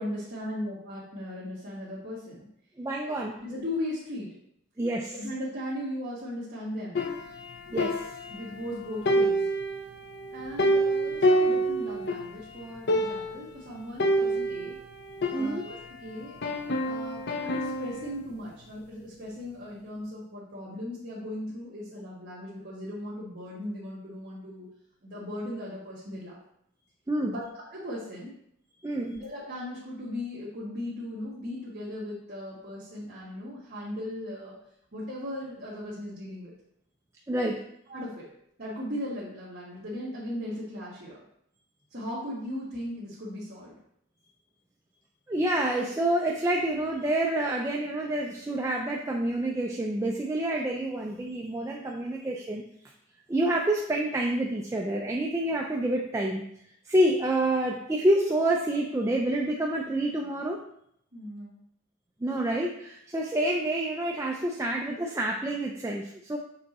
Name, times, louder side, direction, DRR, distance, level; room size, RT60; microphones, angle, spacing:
voice 1, 0.0-2.5 3.0-4.4 5.1-7.0 8.3-9.5 10.3-14.8 15.3-16.4 16.8-24.7 25.0-26.4 27.2-27.4 27.7-28.3 29.1-34.6 34.9-36.5 37.9-38.3 38.6-41.2 41.9-43.8 61.1-61.6, left 1 dB, 45° right, -8 dB, 1.5 m, -37 dB
voice 2, 2.8-3.4 4.8-5.1 7.7-8.0 15.3-15.7 27.1-27.3 28.8-29.1 37.3-37.6 45.3-52.6 53.3-56.4 56.9-60.6 62.2-66.4, right 1 dB, 15° right, 0 dB, 0.4 m, -28 dB
sound 1, 7.0-8.7 9.1-12.3 12.6-12.7 12.9-13.5 14.0-16.0 16.4-18.1, right 1 dB, 50° left, 0.5 m, -27 dB
6.7 x 3.8 x 4.2 m, 0.72 s
head